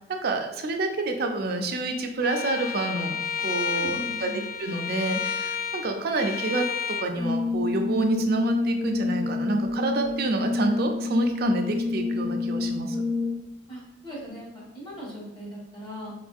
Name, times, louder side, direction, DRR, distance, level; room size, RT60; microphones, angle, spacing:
voice 1, 0.1-3.2 3.4-4.3 4.6-13.0, right 2 dB, 55° right, 4 dB, 0.5 m, -28 dB
Bowed string instrument, 2.2-7.1, left 7 dB, 55° left, 0.3 m, -31 dB
voice 2, 3.7-4.5 13.7-16.1, equal, 30° left, -5 dB, 1.2 m, -39 dB
Brass instrument, 7.2-13.6, left 3 dB, 90° left, 1.2 m, -28 dB
4.2 x 2.5 x 2.4 m, 0.91 s
head